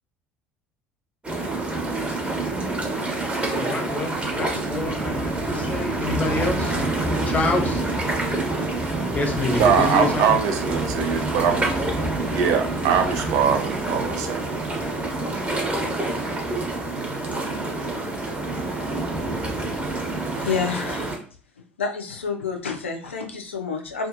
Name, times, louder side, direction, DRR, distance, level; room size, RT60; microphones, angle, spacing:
sound 1, 1.2-21.2, right 2 dB, 20° right, 0.9 m, -27 dB
voice 1, 3.5-6.7 7.2-7.8 9.0-10.4, left 3 dB, 25° left, 3 dB, 0.7 m, -27 dB
voice 2, 9.6-11.6 12.3-14.6 15.2-15.4, right 7 dB, 60° right, 4 dB, 0.5 m, -22 dB
voice 3, 20.4-21.1 21.8-24.1, left 5 dB, 90° left, 4 dB, 0.4 m, -28 dB
2.5 x 2.4 x 2.5 m, 0.42 s
hypercardioid pair, 65°, 6 cm